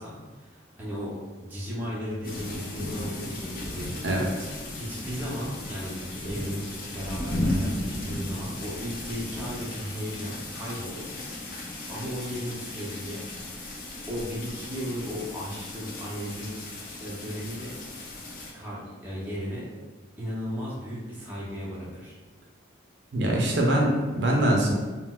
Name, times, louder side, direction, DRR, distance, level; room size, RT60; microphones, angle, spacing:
voice 1, 0.0-4.0 4.7-11.1 11.9-13.3 14.1-16.5 17.0-17.8 18.5-19.7 20.2-22.1, equal, 10° right, -7 dB, 0.6 m, -35 dB
sound 1, 2.2-18.5, left 1 dB, 45° left, 0.5 m, -35 dB
voice 2, 4.0-4.5 23.1-24.7, right 1 dB, 60° right, -1 dB, 0.5 m, -23 dB
3.9 x 2.0 x 2.3 m, 1.3 s
head